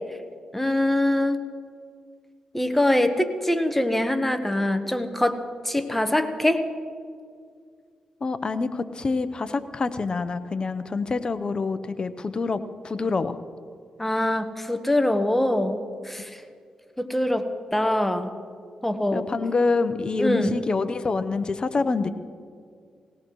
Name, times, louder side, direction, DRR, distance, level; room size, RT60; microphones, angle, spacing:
voice 1, 0.5-1.4 2.5-5.4 5.6-6.6 14.0-15.8 16.1-16.3 17.0-17.4 17.7-18.3 18.8-19.3 20.2-20.5, left 1 dB, 10° left, 7 dB, 1.3 m, -23 dB
voice 2, 8.2-13.4 19.1-22.1, left 4 dB, 45° left, 12 dB, 0.8 m, -26 dB
20.0 x 17.0 x 3.1 m, 2.2 s
cardioid pair, 60°, 2 cm